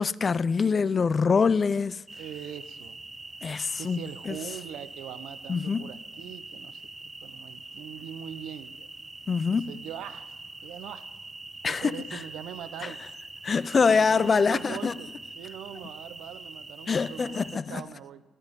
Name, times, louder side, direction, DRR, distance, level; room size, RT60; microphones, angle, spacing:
voice 1, 0.0-2.0 3.4-4.4 5.5-5.9 9.3-9.8 11.6-12.2 12.8-12.9 13.4-15.0 16.9-17.8, left 5 dB, 40° left, 0.4 m, -25 dB
sound 1, 2.1-17.6, right 2 dB, 20° right, 0.9 m, -44 dB
voice 2, 2.2-3.0 3.8-6.8 7.2-8.9 9.5-10.4 10.6-11.1 11.6-13.0 13.8-15.1 15.3-18.2, right 10 dB, 85° right, 0.8 m, -42 dB
21.0 x 13.0 x 5.3 m
cardioid pair, 90°, 0 cm